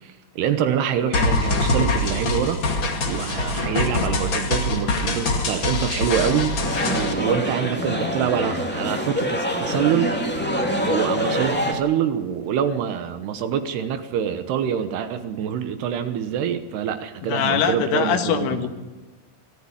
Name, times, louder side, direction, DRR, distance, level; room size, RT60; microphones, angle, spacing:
voice 1, 0.0-2.6 3.0-6.6 6.9-10.2 10.9-18.7, right 9 dB, 70° right, 9 dB, 2.8 m, -25 dB
sound 1, 1.1-7.1, left 2 dB, 45° left, 1.6 m, -24 dB
sound 2, 6.6-11.7, equal, 15° left, 0.3 m, -25 dB
voice 2, 17.2-18.7, left 9 dB, 85° left, 5 dB, 4.1 m, -23 dB
24.5 x 14.0 x 9.8 m, 1.2 s
omnidirectional pair, 5.6 m